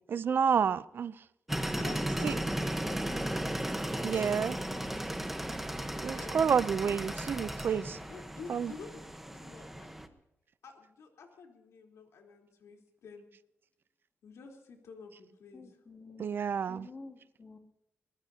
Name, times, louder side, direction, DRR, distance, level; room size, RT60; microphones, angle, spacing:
voice 1, 0.1-1.2 2.2-2.4 4.0-4.6 6.0-8.0 8.5-8.7 16.2-16.9, right 7 dB, 50° right, 17 dB, 0.5 m, -29 dB
sound 1, 1.5-10.1, right 1 dB, 5° right, 1.0 m, -35 dB
voice 2, 1.8-3.4 5.9-9.9 10.6-13.3 14.2-15.6, left 5 dB, 85° left, 1 dB, 3.6 m, -50 dB
voice 3, 4.7-5.1 15.5-16.4 16.7-17.6, left 3 dB, 30° left, 1 dB, 2.5 m, -50 dB
23.0 x 20.0 x 2.8 m, 0.84 s
wide cardioid pair, 165°, 5 cm